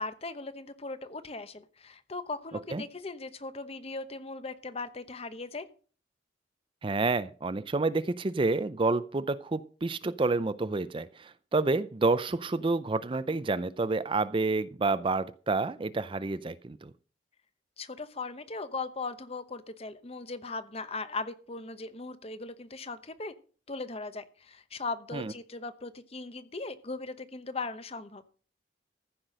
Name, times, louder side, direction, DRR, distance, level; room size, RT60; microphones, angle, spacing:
voice 1, 0.0-5.7 17.8-23.3 23.7-28.2, left 3 dB, 35° left, 12 dB, 0.9 m, -38 dB
voice 2, 6.8-16.9 25.1-25.3, right 3 dB, 30° right, 15 dB, 0.5 m, -29 dB
14.5 x 5.9 x 6.5 m, 0.39 s
head